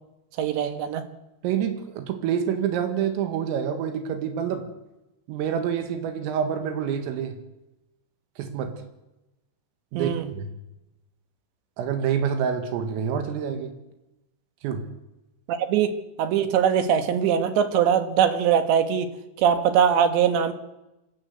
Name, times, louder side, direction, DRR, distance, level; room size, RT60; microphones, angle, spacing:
voice 1, 0.4-1.0 10.0-10.3 15.5-19.1 19.4-20.5, right 8 dB, 70° right, 8 dB, 3.5 m, -22 dB
voice 2, 1.4-4.7 5.3-7.4 8.4-8.7 9.9-10.5 11.8-13.7 14.6-14.8, right 8 dB, 85° right, 6 dB, 4.6 m, -27 dB
26.0 x 14.5 x 8.1 m, 0.95 s
omnidirectional pair, 5.8 m